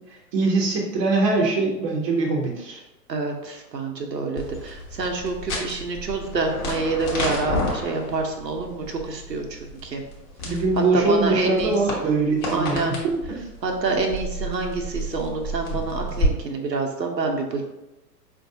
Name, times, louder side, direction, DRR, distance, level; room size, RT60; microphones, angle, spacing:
voice 1, 0.3-2.8 10.4-12.9 13.3-13.4, right 3 dB, 20° right, -2 dB, 0.6 m, -22 dB
voice 2, 3.1-10.0 10.5-10.6 10.9-11.7 12.5-12.9 13.6-17.7, right 3 dB, 85° right, 2 dB, 0.8 m, -27 dB
sound 1, 4.4-16.3, equal, 20° left, 0.8 m, -31 dB
4.4 x 2.7 x 2.6 m, 0.96 s
figure-of-eight pair, 115°, 49 cm